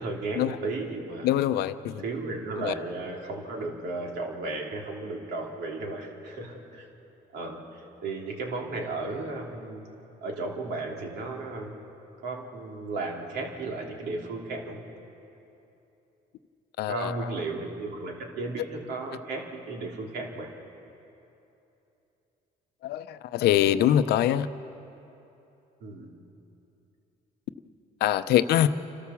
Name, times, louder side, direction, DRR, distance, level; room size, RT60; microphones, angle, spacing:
voice 1, 0.0-1.3 2.0-6.9 7.3-9.9 10.2-11.7 12.2-14.8 16.9-20.5 25.8-26.1, right 3 dB, 75° right, 0 dB, 3.2 m, -34 dB
voice 2, 1.2-2.0 2.6-2.7 16.8-17.3 22.8-24.5 28.0-28.7, left 11 dB, 75° left, 12 dB, 0.7 m, -24 dB
29.5 x 13.0 x 7.1 m, 2.9 s
cardioid pair, 110°, 17 cm